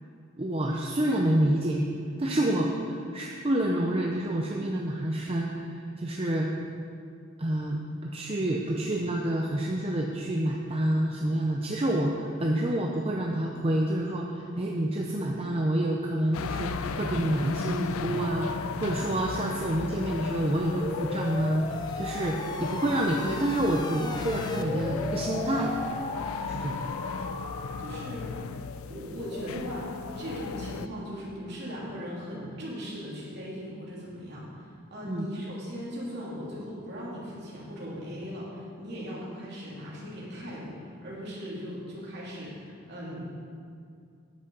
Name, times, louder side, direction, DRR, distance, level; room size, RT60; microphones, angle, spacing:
voice 1, 0.4-1.8 2.2-6.5 7.4-21.7 22.0-25.7 26.5-26.9 35.1-35.3, right 1 dB, 30° right, -1 dB, 0.6 m, -28 dB
sound 1, 16.3-30.9, left 5 dB, 85° left, 0.4 m, -36 dB
sound 2, 20.8-28.3, left 2 dB, 20° left, 0.4 m, -37 dB
voice 2, 27.8-28.3 28.9-43.2, equal, 50° right, -6 dB, 2.9 m, -39 dB
9.6 x 8.1 x 5.3 m, 2.4 s
head